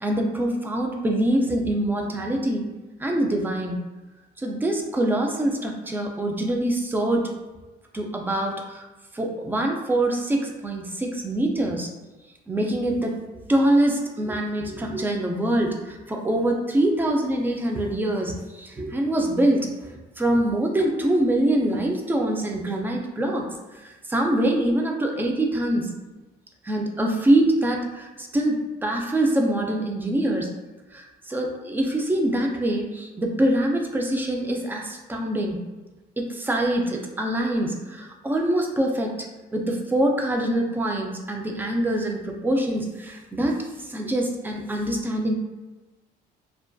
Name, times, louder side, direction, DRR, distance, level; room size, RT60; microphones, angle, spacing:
voice 1, 0.0-2.7 3.0-3.8 4.4-7.3 7.9-8.8 9.1-11.9 12.5-13.2 13.5-23.5 23.8-25.9 26.6-30.5 30.9-35.6 36.2-45.3, right 1 dB, 10° right, 1 dB, 0.3 m, -24 dB
2.4 x 2.3 x 2.2 m, 1.2 s
cardioid pair, 110°, 17 cm